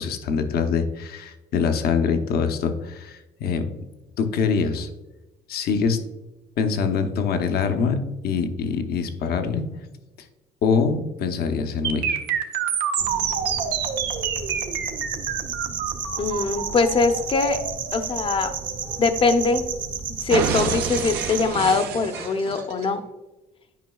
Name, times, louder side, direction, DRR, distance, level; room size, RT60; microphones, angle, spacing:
voice 1, 0.0-3.7 4.2-4.9 5.5-6.0 6.6-9.6 10.6-12.2, left 5 dB, 65° left, 7 dB, 0.8 m, -24 dB
sound 1, 11.8-19.8 20.3-22.9, right 7 dB, 75° right, 0.8 m, -28 dB
sound 2, 13.0-21.5, right 6 dB, 55° right, 1.1 m, -32 dB
voice 2, 16.2-17.6 17.9-18.5 19.0-19.6 20.2-23.0, left 4 dB, 30° left, 8 dB, 0.7 m, -22 dB
9.3 x 5.1 x 2.3 m, 1.1 s
cardioid pair, 110°, 17 cm